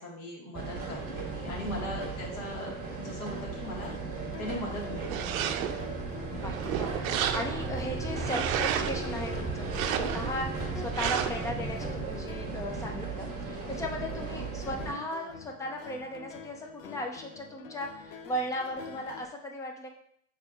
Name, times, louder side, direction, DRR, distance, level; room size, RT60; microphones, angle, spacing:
voice 1, 0.0-3.9 4.4-5.4 14.3-14.5, left 1 dB, 50° left, -2 dB, 1.7 m, -39 dB
sound 1, 0.5-14.9, right 3 dB, 20° right, 1.4 m, -36 dB
sound 2, 3.4-19.3, left 6 dB, 80° left, 0.7 m, -47 dB
sound 3, 5.0-5.9 6.4-7.7 8.1-9.0 9.6-10.4 10.9-11.5, right 10 dB, 85° right, 0.5 m, -32 dB
voice 2, 6.3-19.9, left 1 dB, 10° left, 2 dB, 0.3 m, -37 dB
5.8 x 3.5 x 2.3 m, 0.66 s
supercardioid pair, 125°, 40 cm